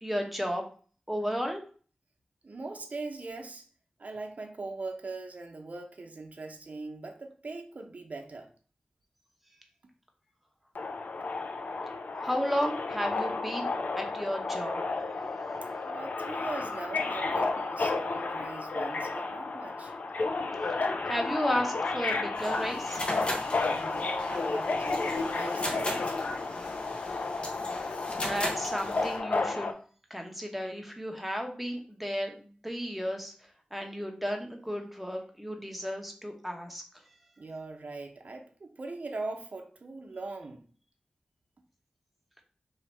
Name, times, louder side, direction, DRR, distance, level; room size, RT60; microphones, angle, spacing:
voice 1, 0.0-0.6 1.1-1.6 12.2-13.7 13.9-14.8 21.0-23.0 28.1-29.7 30.1-33.3 33.7-36.8, equal, 5° right, 0.9 m, -33 dB
voice 2, 2.4-3.6 4.0-8.5 15.8-19.9 23.7-26.4 37.4-40.7, right 3 dB, 60° right, 0.8 m, -41 dB
Subway metro underground, 10.7-29.7, left 3 dB, 70° left, 0.5 m, -32 dB
sound 1, 22.4-29.2, left 1 dB, 35° left, 0.9 m, -38 dB
3.2 x 2.8 x 4.5 m
wide cardioid pair, 65°, 3 cm